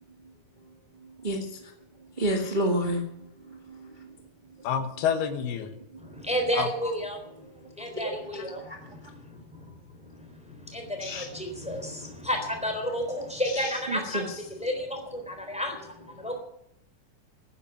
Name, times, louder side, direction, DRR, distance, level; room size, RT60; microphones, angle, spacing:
voice 1, 2.2-3.0 3.5-3.9 8.0-8.1 11.0-11.2 13.9-14.2, equal, 25° right, 1 dB, 0.9 m, -28 dB
voice 2, 4.6-5.8 6.6-6.7 8.4-8.5, left 7 dB, 85° left, 8 dB, 3.4 m, -28 dB
voice 3, 6.0-7.2 7.8-9.7 10.0-16.4, equal, ahead, 4 dB, 3.0 m, -32 dB
12.0 x 10.0 x 9.2 m, 0.77 s
omnidirectional pair, 4.4 m